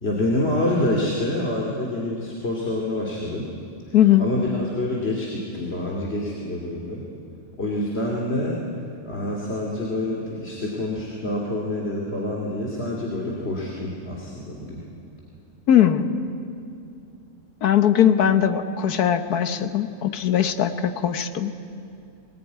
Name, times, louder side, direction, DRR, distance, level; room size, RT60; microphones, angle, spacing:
voice 1, 0.0-3.5 3.8-7.0 7.5-8.6 9.1-14.8, left 1 dB, 40° left, -2 dB, 2.8 m, -27 dB
voice 2, 3.9-4.2 15.7-16.1 17.6-21.5, left 10 dB, 80° left, 9 dB, 1.6 m, -19 dB
22.5 x 19.0 x 9.4 m, 2.6 s
omnidirectional pair, 1.6 m